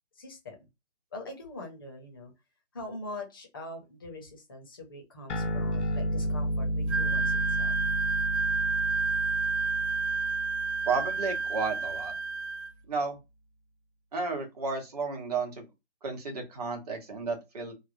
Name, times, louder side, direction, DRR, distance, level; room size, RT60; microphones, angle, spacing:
voice 1, 0.2-0.6 1.1-2.3 2.7-7.8, left 2 dB, 20° left, 2 dB, 0.6 m, -43 dB
sound 1, 5.3-12.1, equal, 80° left, 0.7 m, -32 dB
Wind instrument woodwind instrument, 6.9-12.7, right 4 dB, 75° right, 0.5 m, -30 dB
voice 2, 10.9-12.1 12.9-13.2 14.1-15.7 16.0-17.7, right 4 dB, 35° right, 3 dB, 1.1 m, -32 dB
3.2 x 2.1 x 2.5 m, 0.24 s
figure-of-eight pair, 155°, 34 cm